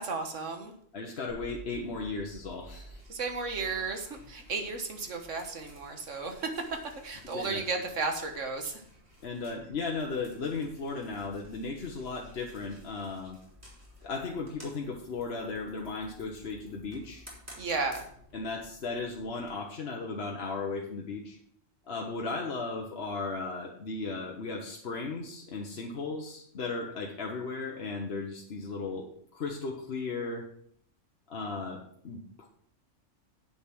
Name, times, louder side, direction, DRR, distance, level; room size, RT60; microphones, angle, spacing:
voice 1, 0.0-0.8 3.1-6.7 7.0-8.8 17.6-18.0, right 4 dB, 70° right, 5 dB, 1.7 m, -34 dB
voice 2, 0.9-3.0 7.3-7.6 9.2-13.4 14.0-17.2 18.3-21.4 21.9-30.5 31.3-32.5, left 3 dB, 55° left, 1 dB, 1.2 m, -36 dB
sound 1, 1.3-19.5, left 1 dB, 10° right, 3.5 m, -53 dB
8.2 x 6.8 x 6.0 m, 0.64 s
omnidirectional pair, 1.3 m